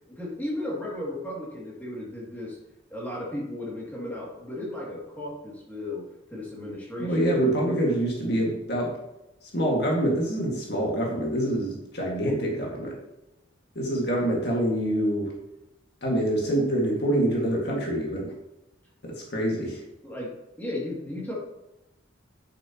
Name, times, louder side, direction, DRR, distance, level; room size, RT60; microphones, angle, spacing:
voice 1, 0.1-2.6 2.9-6.1 6.3-7.5 20.0-20.3 20.6-21.3, left 1 dB, 10° left, -5 dB, 2.5 m, -35 dB
voice 2, 7.0-8.9 9.5-13.0 13.8-15.3 16.0-18.3 19.0-19.8, right 1 dB, 55° left, -2 dB, 2.0 m, -26 dB
10.0 x 7.3 x 3.0 m, 0.96 s
head